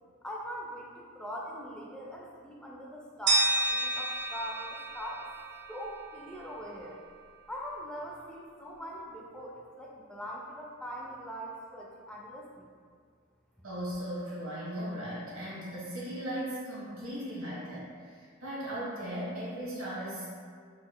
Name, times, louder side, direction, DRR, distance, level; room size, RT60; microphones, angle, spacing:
voice 1, 0.2-5.3 5.7-7.0 7.5-12.7, equal, 5° left, -3 dB, 0.4 m, -41 dB
sound 1, 3.3-6.2, right 2 dB, 55° right, 0.4 m, -30 dB
voice 2, 13.6-20.3, equal, 75° right, -8 dB, 1.4 m, -37 dB
4.1 x 3.9 x 2.2 m, 2.1 s
head